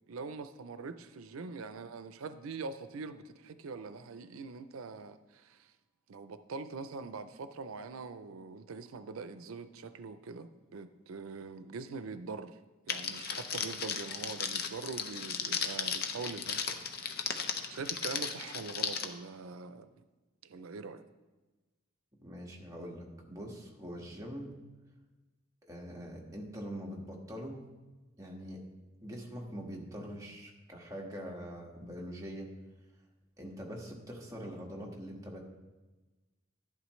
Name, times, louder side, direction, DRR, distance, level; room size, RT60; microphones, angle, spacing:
voice 1, 0.1-5.7 6.1-12.6 12.9-17.3 17.7-19.9 20.4-21.0, right 4 dB, 90° right, 11 dB, 0.5 m, -43 dB
Crackle, 12.9-19.0, left 6 dB, 50° left, 0.8 m, -36 dB
voice 2, 22.2-24.6 25.7-27.6 28.2-28.6 29.0-32.5 33.4-35.4, equal, 15° right, -1 dB, 1.5 m, -43 dB
11.5 x 11.5 x 3.1 m, 1.2 s
head